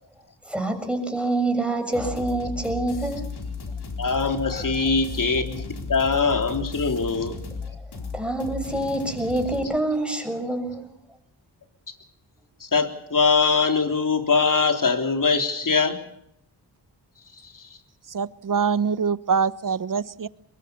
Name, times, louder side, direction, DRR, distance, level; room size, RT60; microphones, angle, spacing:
voice 1, 0.4-3.3 8.1-10.9, right 2 dB, 5° right, 5 dB, 6.8 m, -26 dB
sound 1, 1.9-9.6, left 4 dB, 75° left, 4.4 m, -34 dB
voice 2, 4.0-7.4 12.6-16.0 17.5-17.7, left 4 dB, 50° left, 5 dB, 3.7 m, -22 dB
voice 3, 18.1-20.3, right 6 dB, 50° right, 17 dB, 1.0 m, -24 dB
22.5 x 22.5 x 7.1 m, 0.75 s
cardioid pair, 60°, 40 cm